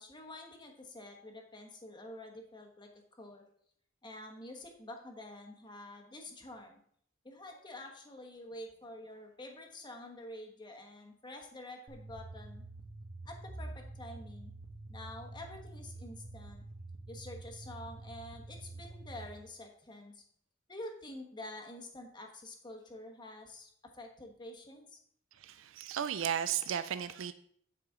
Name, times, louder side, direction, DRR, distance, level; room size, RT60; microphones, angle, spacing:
voice 1, 0.0-3.4 4.0-6.8 7.2-12.6 13.2-14.5 14.9-16.6 17.1-20.2 20.7-25.0, left 1 dB, 25° left, 3 dB, 1.1 m, -48 dB
sound 1, 11.9-19.3, right 2 dB, 35° right, 1.3 m, -47 dB
voice 2, 25.4-27.3, right 9 dB, 75° right, 12 dB, 0.4 m, -34 dB
10.0 x 4.9 x 3.7 m, 0.64 s
head